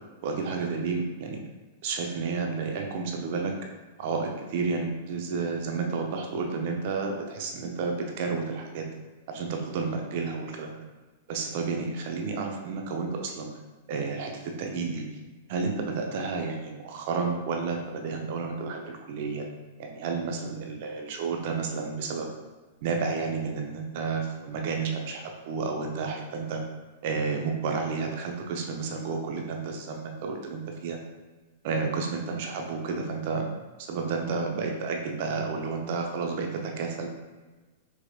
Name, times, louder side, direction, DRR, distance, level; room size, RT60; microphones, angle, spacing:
voice 1, 0.2-1.4 1.8-3.5 4.0-8.8 9.3-10.8 11.3-13.5 13.9-15.0 15.5-19.5 19.8-22.3 22.8-26.6 27.0-31.0 31.6-33.5 33.8-37.1, right 4 dB, 55° right, 2 dB, 0.7 m, -31 dB
4.8 x 2.9 x 2.4 m, 1.3 s
hypercardioid pair, 105°, 0 cm